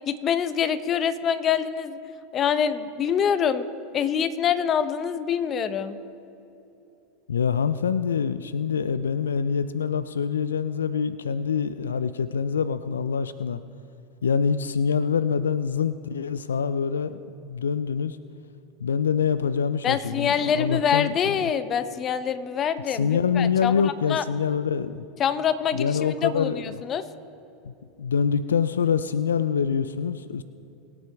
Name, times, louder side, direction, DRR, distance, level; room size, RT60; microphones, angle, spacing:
voice 1, 0.1-2.0 2.3-3.7 3.9-6.0 19.8-24.2 25.2-27.0, left 8 dB, 35° left, 13 dB, 0.8 m, -25 dB
voice 2, 7.3-13.6 14.2-17.2 17.4-18.2 18.8-21.5 22.9-25.1 25.7-26.8 27.6-27.7 28.0-30.4, left 6 dB, 85° left, 14 dB, 0.3 m, -25 dB
22.5 x 8.5 x 3.5 m, 2.8 s
hypercardioid pair, 85°, 0 cm